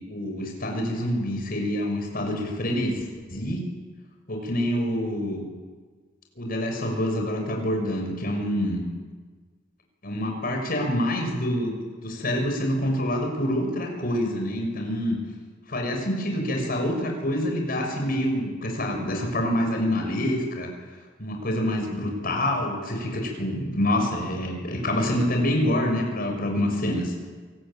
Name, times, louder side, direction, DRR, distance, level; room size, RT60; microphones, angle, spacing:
voice 1, 0.1-3.6 4.3-5.4 6.4-8.8 10.0-11.7 12.0-15.2 15.7-20.7 21.2-27.1, left 1 dB, 50° left, 2 dB, 6.5 m, -26 dB
27.0 x 20.0 x 9.1 m, 1.5 s
head